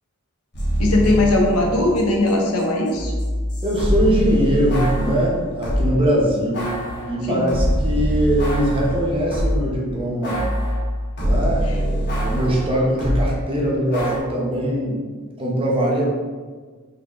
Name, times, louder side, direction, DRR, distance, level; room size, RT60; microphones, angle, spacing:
sound 1, 0.5-2.3 2.6-5.9 6.5-9.7 10.2-13.3 13.9-14.2, equal, 50° left, 1.2 m, -23 dB
voice 1, 0.8-3.1 7.3-7.5, left 2 dB, 80° left, 0 dB, 0.9 m, -19 dB
voice 2, 3.6-6.7 7.1-10.4 11.2-15.0 15.4-16.0, equal, 25° right, -4 dB, 0.8 m, -22 dB
3.9 x 3.9 x 3.2 m, 1.5 s
head